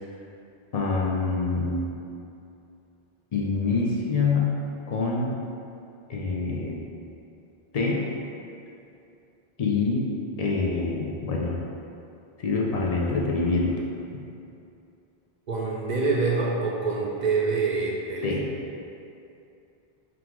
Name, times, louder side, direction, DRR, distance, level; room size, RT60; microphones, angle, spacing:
voice 1, 0.7-1.9 3.3-4.5 4.9-5.4 6.1-6.8 7.7-8.0 9.6-10.1 10.4-11.6 12.4-13.8 18.2-18.5, left 4 dB, 50° left, -3 dB, 0.5 m, -25 dB
voice 2, 15.5-18.3, right 4 dB, 50° right, -4 dB, 0.6 m, -25 dB
3.7 x 2.4 x 4.5 m, 2.7 s
omnidirectional pair, 1.1 m